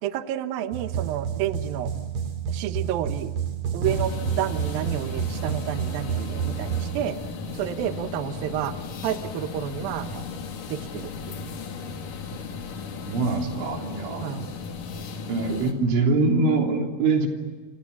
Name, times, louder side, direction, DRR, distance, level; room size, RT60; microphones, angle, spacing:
voice 1, 0.0-1.9 2.5-3.3 3.7-7.2 7.5-8.7 9.0-10.1 10.7-11.4 14.2-14.5, right 11 dB, 70° right, 9 dB, 2.5 m, -30 dB
sound 1, 0.7-7.0, right 7 dB, 50° right, 2.4 m, -29 dB
sound 2, 3.8-15.7, left 4 dB, 55° left, 3.3 m, -36 dB
voice 2, 13.1-14.2 15.3-17.3, right 3 dB, 85° right, 2 dB, 5.8 m, -23 dB
29.5 x 27.5 x 7.3 m, 1.3 s
omnidirectional pair, 5.3 m